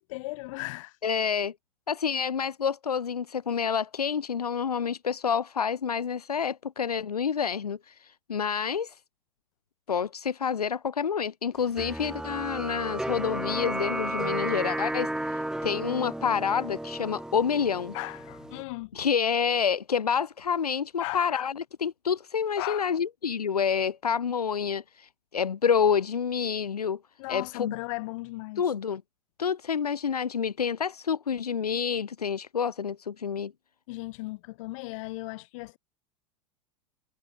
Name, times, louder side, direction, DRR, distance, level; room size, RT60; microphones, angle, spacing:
voice 1, 0.0-0.9 17.9-18.9 21.0-21.5 22.6-22.9 27.2-28.6 33.9-35.8, left 22 dB, 55° left, 4.0 m, -36 dB
voice 2, 1.0-1.5 1.9-9.0 9.9-17.9 18.9-27.0 27.3-27.8 28.6-29.0 29.4-33.5, left 7 dB, 80° left, 1.1 m, -28 dB
sound 1, 11.8-18.6, right 1 dB, 5° right, 1.6 m, -33 dB
figure-of-eight pair, 85°, 19 cm